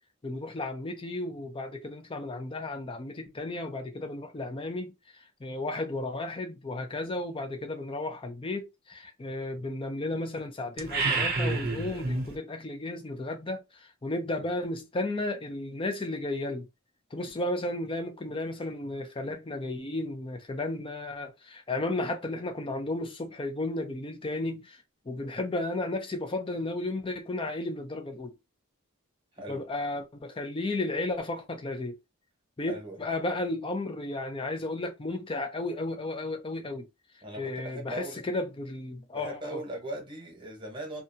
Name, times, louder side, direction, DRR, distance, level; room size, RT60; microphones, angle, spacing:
voice 1, 0.2-4.9 5.4-16.7 17.1-24.8 25.1-28.3 29.5-32.0 32.6-36.9 37.4-39.6, left 2 dB, 25° left, 0.5 m, -33 dB
sound 1, 10.8-12.4, right 3 dB, 45° right, 0.6 m, -28 dB
voice 2, 29.3-29.6 32.7-33.0 37.2-38.2 39.1-41.0, right 1 dB, 20° right, 1.0 m, -39 dB
2.6 x 2.4 x 2.6 m
head